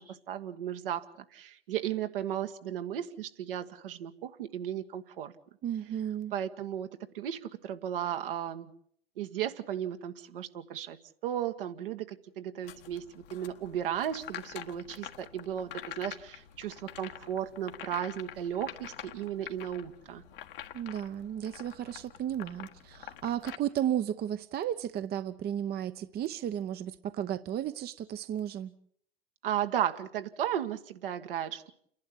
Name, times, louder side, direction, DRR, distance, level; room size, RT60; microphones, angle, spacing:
voice 1, 0.0-5.3 6.3-8.7 9.2-11.0 11.2-15.7 16.0-20.2 29.4-31.7, right 10 dB, 65° right, 1.5 m, -35 dB
voice 2, 5.6-6.3 20.7-28.7, right 10 dB, 30° right, 0.9 m, -34 dB
sound 1, 12.6-23.6, left 11 dB, 65° left, 1.6 m, -46 dB
29.5 x 11.5 x 8.4 m
figure-of-eight pair, 75°, 30 cm